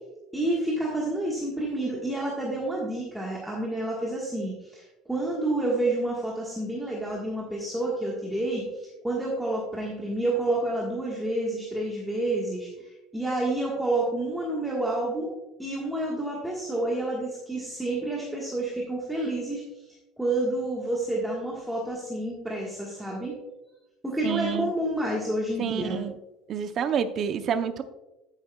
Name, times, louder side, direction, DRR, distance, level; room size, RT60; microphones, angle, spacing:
voice 1, 0.3-15.3 15.6-19.6 20.2-23.3 24.0-26.0, right 1 dB, 5° right, -4 dB, 1.4 m, -29 dB
voice 2, 24.2-24.7 25.6-26.2 26.5-27.8, right 8 dB, 35° right, 10 dB, 0.6 m, -28 dB
10.0 x 9.0 x 2.2 m, 0.98 s
cardioid pair, 150°, 0 cm